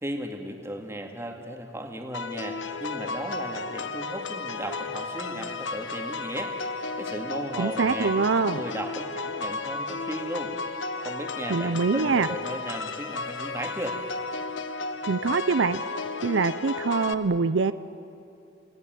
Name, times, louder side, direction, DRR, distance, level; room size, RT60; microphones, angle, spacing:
voice 1, 0.0-10.5 11.0-14.0, right 1 dB, 15° right, 3 dB, 2.3 m, -36 dB
sound 1, 2.1-17.1, left 3 dB, 75° left, 1.1 m, -33 dB
voice 2, 7.6-8.6 11.5-12.3 15.1-17.7, right 4 dB, 70° right, 13 dB, 0.6 m, -24 dB
29.5 x 18.5 x 9.4 m, 2.7 s
head